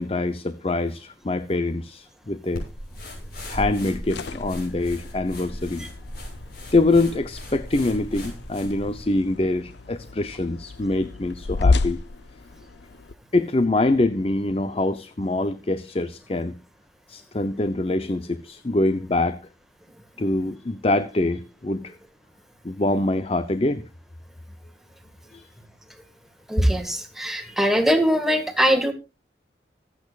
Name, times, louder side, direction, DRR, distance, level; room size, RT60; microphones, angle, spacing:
voice 1, 0.0-2.7 3.5-5.9 6.7-12.0 13.3-16.6 17.1-19.4 20.2-21.9 22.6-23.8 25.3-25.5, left 2 dB, 35° left, 12 dB, 0.6 m, -24 dB
sound 1, 2.5-9.0, equal, 55° left, 6.8 m, -37 dB
sound 2, 4.0-13.1, left 3 dB, 75° left, 0.7 m, -31 dB
voice 2, 26.5-28.9, equal, ahead, 6 dB, 1.7 m, -21 dB
25.0 x 8.4 x 2.4 m, 0.28 s
head